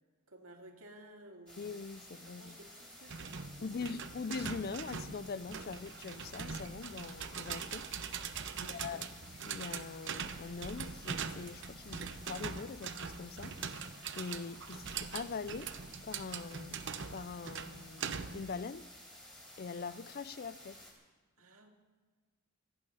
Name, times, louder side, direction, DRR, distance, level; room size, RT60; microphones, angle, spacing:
voice 1, 0.3-1.6 2.2-3.9 8.5-8.8 21.4-21.7, right 1 dB, 70° right, 2.3 m, -56 dB
sound 1, 1.5-20.9, left 1 dB, 5° left, 3.6 m, -54 dB
voice 2, 1.6-2.6 3.6-8.1 8.6-9.1 9.4-13.9 14.1-15.8 16.0-16.8 17.1-18.9 19.6-20.8, left 4 dB, 45° left, 0.4 m, -43 dB
sound 2, 3.1-18.5, right 6 dB, 55° right, 0.7 m, -42 dB
26.0 x 9.0 x 5.6 m
head